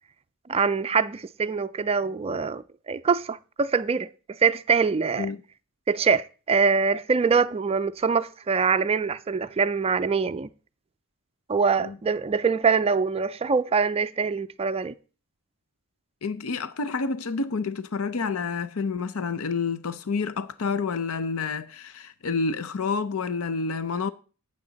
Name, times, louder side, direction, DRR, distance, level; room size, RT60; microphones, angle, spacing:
voice 1, 0.5-4.1 4.4-5.3 5.9-10.5 11.5-15.0, right 5 dB, 25° right, 0.4 m, -24 dB
voice 2, 16.2-24.1, left 4 dB, 70° left, 0.6 m, -29 dB
12.0 x 8.6 x 3.9 m
head